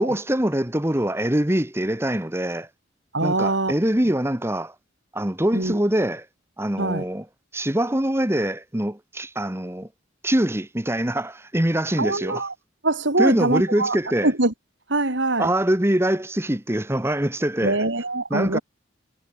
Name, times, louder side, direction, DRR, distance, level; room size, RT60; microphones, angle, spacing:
voice 1, 0.0-2.7 3.2-4.7 5.1-6.3 6.6-7.3 7.5-9.9 10.2-12.5 13.2-14.3 15.4-17.8 18.3-18.6, right 1 dB, 15° right, 1.4 m, -23 dB
voice 2, 3.1-3.7 5.5-5.8 6.8-7.0 12.0-12.5 12.8-14.0 14.2-14.5 14.9-15.5 17.6-18.6, right 2 dB, 75° right, 3.3 m, -23 dB
head